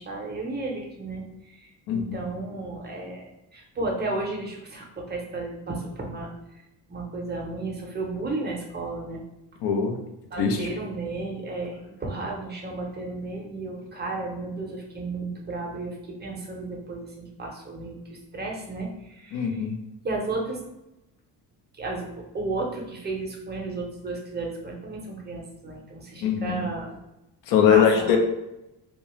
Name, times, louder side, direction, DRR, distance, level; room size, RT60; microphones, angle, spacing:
voice 1, 0.0-6.6 6.9-9.2 10.3-19.6 20.0-20.6 21.7-27.0 27.7-28.1, right 2 dB, 25° right, -1 dB, 0.5 m, -33 dB
voice 2, 1.9-2.2 9.6-10.0 10.4-10.7 19.3-19.7 26.2-26.7 27.5-28.2, left 7 dB, 85° left, 3 dB, 0.6 m, -22 dB
2.4 x 2.2 x 3.0 m, 0.92 s
cardioid pair, 130°, 41 cm